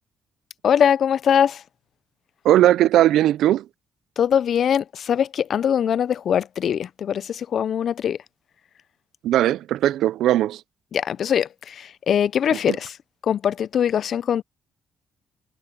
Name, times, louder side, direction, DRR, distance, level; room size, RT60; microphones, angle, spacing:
voice 1, 0.6-1.6 4.2-8.2 10.9-13.0 13.2-14.4, left 8 dB, 60° left, 0.4 m, -22 dB
voice 2, 2.4-3.6 9.2-10.6 12.7-12.8, right 13 dB, 80° right, 0.4 m, -18 dB
cardioid pair, 90°, 0 cm